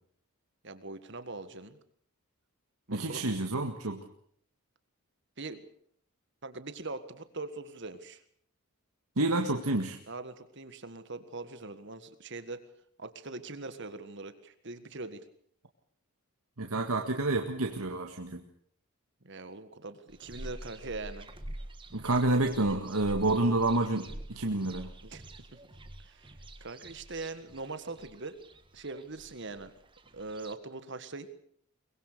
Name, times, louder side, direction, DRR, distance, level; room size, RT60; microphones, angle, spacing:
voice 1, 0.6-1.8 2.9-3.3 5.4-5.6 6.4-8.2 10.1-12.7 13.0-15.2 19.2-21.3 25.0-25.6 26.0-26.3 26.6-28.4 28.7-29.7 30.1-31.3, right 3 dB, 55° right, 11 dB, 1.7 m, -42 dB
voice 2, 2.9-4.1 9.2-10.0 16.6-18.4 21.9-24.9, right 2 dB, 80° right, 4 dB, 1.8 m, -29 dB
sound 1, 20.1-30.5, right 1 dB, 20° right, 1.6 m, -47 dB
23.5 x 21.0 x 6.8 m, 0.63 s
head